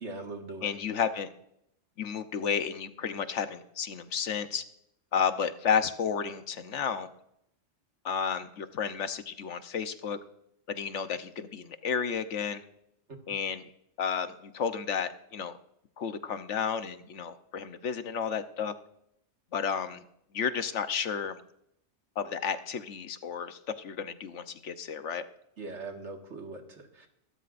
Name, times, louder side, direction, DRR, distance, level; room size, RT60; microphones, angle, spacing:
voice 1, 0.0-0.7 25.6-27.1, right 3 dB, 75° right, 3 dB, 2.1 m, -41 dB
voice 2, 0.6-1.3 2.0-4.6 5.1-7.1 8.0-10.2 10.7-12.6 13.3-13.7 14.0-15.5 16.0-18.7 19.5-20.0 20.3-21.4 22.2-25.2, left 7 dB, 75° left, 10 dB, 1.2 m, -32 dB
23.5 x 12.5 x 2.5 m, 0.77 s
omnidirectional pair, 1.2 m